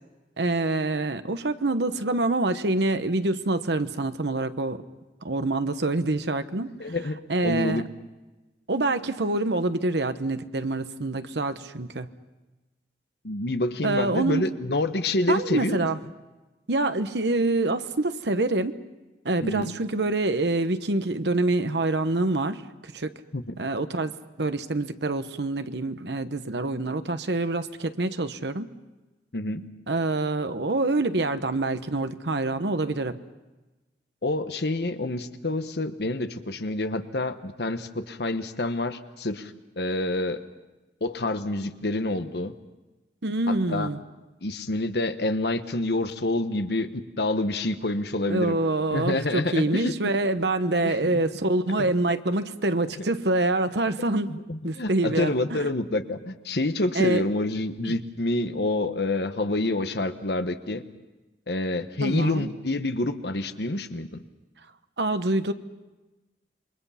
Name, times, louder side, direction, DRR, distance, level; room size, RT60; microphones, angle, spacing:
voice 1, 0.4-4.8 5.2-6.9 7.3-7.8 8.7-12.1 13.8-14.5 15.3-16.0 16.7-18.8 19.2-23.1 23.6-24.1 24.4-28.7 29.9-33.2 43.2-44.0 48.3-54.4 54.6-55.7 56.9-57.2 57.8-57.9 62.0-62.5 65.0-65.5, right 2 dB, 80° right, 10 dB, 1.1 m, -26 dB
voice 2, 6.8-7.2 7.4-7.8 13.2-15.9 19.4-19.7 23.3-23.6 29.3-29.6 34.2-40.4 41.0-42.5 43.5-43.9 44.4-48.6 48.9-49.9 50.8-51.2 51.8-51.9 53.0-53.1 54.3-60.8 61.5-64.2, left 2 dB, 70° left, 9 dB, 1.2 m, -27 dB
28.0 x 22.5 x 5.8 m, 1.1 s
head